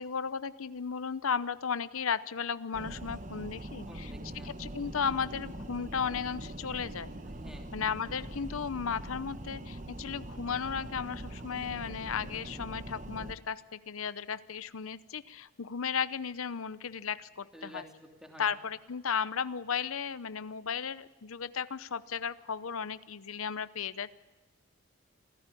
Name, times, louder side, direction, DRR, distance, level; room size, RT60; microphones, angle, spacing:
voice 1, 0.0-4.1 4.4-7.1 7.7-17.8 18.4-24.1, left 6 dB, 80° left, 15 dB, 0.7 m, -35 dB
sound 1, 2.7-13.3, right 1 dB, 35° right, 1.2 m, -43 dB
voice 2, 3.9-4.5 7.2-7.7 17.5-18.5, equal, 5° right, 3 dB, 2.9 m, -50 dB
27.0 x 16.0 x 9.9 m, 1.2 s
head